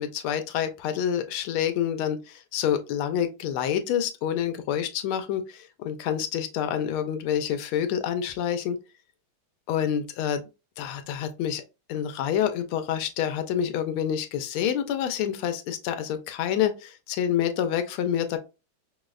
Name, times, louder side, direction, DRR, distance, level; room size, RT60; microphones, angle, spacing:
voice 1, 0.0-8.8 9.7-10.4 10.8-11.6 11.9-18.4, left 9 dB, 90° left, 1.5 m, -27 dB
5.1 x 2.1 x 2.3 m
omnidirectional pair, 2.3 m